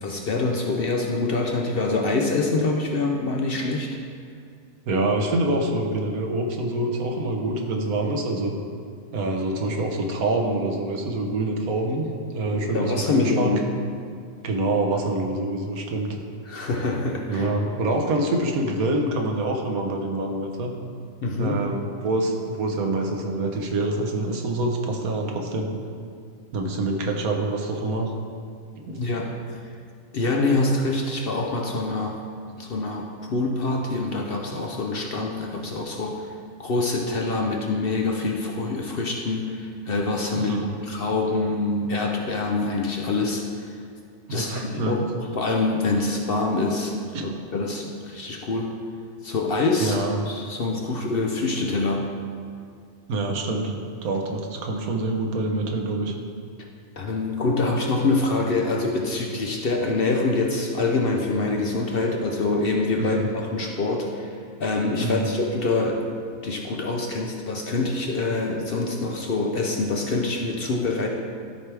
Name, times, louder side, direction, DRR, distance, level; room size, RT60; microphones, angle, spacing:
voice 1, 0.0-3.9 12.4-13.6 16.5-17.5 21.2-21.6 29.0-29.3 30.1-32.2 32.6-36.3 36.6-40.5 40.8-43.5 44.3-47.0 47.2-48.7 49.2-52.1 57.0-66.1 66.4-71.1, left 3 dB, 55° left, 1 dB, 0.7 m, -25 dB
voice 2, 4.9-8.5 9.1-13.5 14.4-16.2 17.3-20.7 21.4-25.7 26.5-28.1 28.8-29.0 40.3-40.7 44.3-45.1 47.1-47.2 49.8-50.2 53.1-53.8 54.0-56.1 63.0-63.2 65.0-65.3, right 2 dB, 85° right, 2 dB, 1.4 m, -26 dB
13.0 x 4.7 x 3.4 m, 2.2 s
omnidirectional pair, 1.5 m